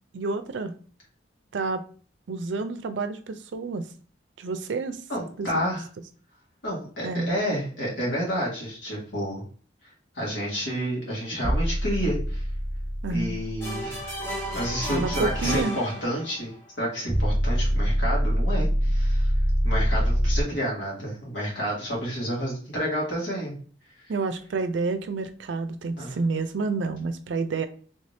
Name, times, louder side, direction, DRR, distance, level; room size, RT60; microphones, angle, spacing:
voice 1, 0.1-0.7 1.5-1.8 2.3-3.8 4.4-5.0 5.4-5.8 7.0-7.3 13.0-13.3 14.9-15.8 24.1-27.7, right 3 dB, 75° right, 10 dB, 0.4 m, -29 dB
voice 2, 5.1-5.8 6.6-9.4 10.2-12.4 13.1-14.0 14.5-19.3 19.6-23.5 26.0-26.1, equal, 85° left, -4 dB, 1.8 m, -30 dB
sound 1, 11.4-15.6 17.1-20.4, equal, 25° right, 0.5 m, -25 dB
sound 2, 13.6-16.6, right 1 dB, 15° left, 0.7 m, -34 dB
3.3 x 2.7 x 3.3 m, 0.42 s
head